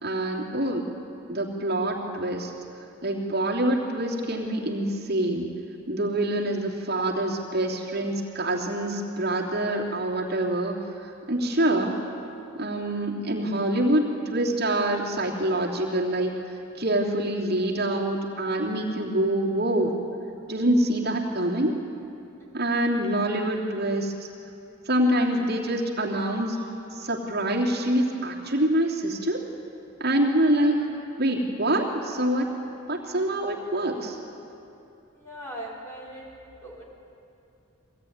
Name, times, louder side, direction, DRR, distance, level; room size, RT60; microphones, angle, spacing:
voice 1, 0.0-0.9 1.3-2.5 3.0-5.5 5.9-10.8 11.3-12.0 12.6-16.4 16.8-19.9 20.5-21.8 22.5-24.1 24.9-26.6 26.9-29.4 30.0-30.8 31.2-32.6 32.9-34.2, right 1 dB, 50° right, -2 dB, 3.1 m, -25 dB
voice 2, 35.2-36.2 36.6-36.8, right 1 dB, 15° left, -5 dB, 5.1 m, -40 dB
23.5 x 18.5 x 9.7 m, 2.8 s
head